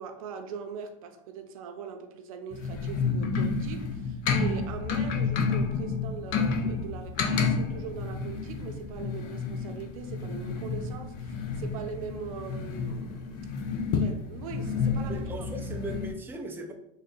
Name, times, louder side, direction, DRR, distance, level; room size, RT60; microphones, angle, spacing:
voice 1, 0.0-13.4 13.9-15.3, right 6 dB, 85° right, 0.6 m, -41 dB
sound 1, 2.5-16.1, left 5 dB, 55° left, 0.6 m, -30 dB
voice 2, 15.1-16.7, right 1 dB, 10° right, 0.5 m, -38 dB
3.4 x 2.7 x 3.8 m
supercardioid pair, 120°, 18 cm